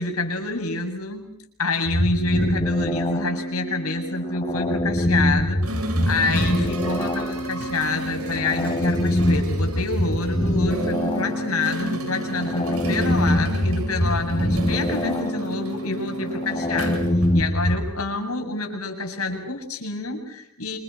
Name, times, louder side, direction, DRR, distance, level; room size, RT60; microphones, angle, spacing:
voice 1, 0.0-1.3 1.6-5.6 6.1-17.0 17.3-20.8, left 3 dB, 80° left, 4 dB, 7.5 m, -27 dB
sound 1, 1.8-17.9, left 1 dB, 25° left, 3.3 m, -24 dB
sound 2, 5.6-17.9, equal, 90° right, 7.8 m, -33 dB
29.5 x 27.5 x 6.6 m, 0.74 s
head